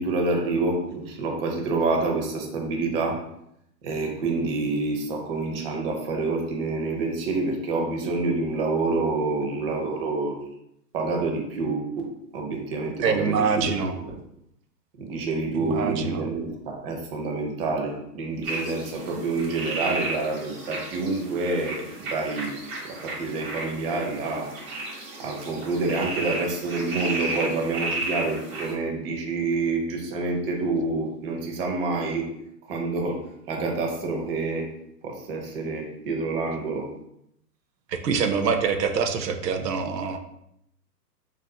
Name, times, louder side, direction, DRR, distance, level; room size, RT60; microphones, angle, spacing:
voice 1, 0.0-3.2 3.8-10.4 10.9-13.7 15.0-22.6 23.0-24.5 25.2-32.3 32.7-33.2 33.5-34.7 35.0-36.9, right 3 dB, 35° right, 1 dB, 0.6 m, -27 dB
voice 2, 13.0-14.0 15.5-16.2 37.9-40.2, right 5 dB, 90° right, 6 dB, 0.6 m, -25 dB
sound 1, 18.4-28.7, right 2 dB, 55° right, 1.1 m, -34 dB
3.7 x 2.5 x 2.2 m, 0.77 s
hypercardioid pair, 135°, 48 cm